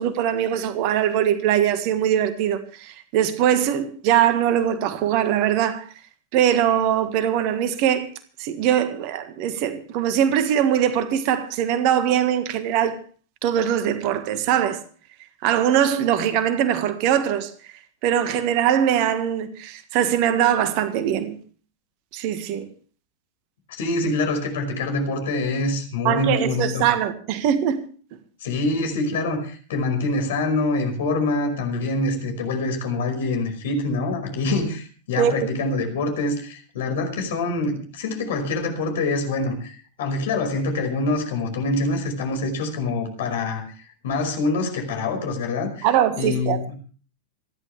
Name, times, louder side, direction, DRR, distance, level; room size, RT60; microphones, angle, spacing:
voice 1, 0.0-5.9 6.3-8.1 8.4-13.0 13.4-14.8 15.4-17.5 18.0-21.4 22.1-22.7 26.0-27.9 35.2-35.5 45.8-46.7, right 10 dB, 45° right, 1.6 m, -22 dB
voice 2, 23.8-26.8 28.4-43.6 44.0-45.9 46.2-46.6, left 2 dB, 60° left, 5.2 m, -25 dB
27.5 x 11.0 x 3.4 m
figure-of-eight pair, 90°, 0 cm